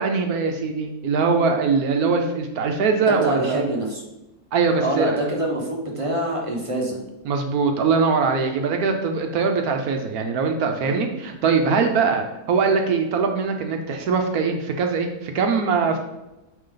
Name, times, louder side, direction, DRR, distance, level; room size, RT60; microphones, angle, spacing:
voice 1, 0.0-3.6 4.5-5.2 7.2-16.0, right 5 dB, 70° right, 4 dB, 1.2 m, -22 dB
voice 2, 3.0-4.0 4.8-7.0 10.8-11.0, right 1 dB, 20° right, -2 dB, 1.2 m, -25 dB
8.6 x 3.3 x 3.8 m, 0.97 s
omnidirectional pair, 1.7 m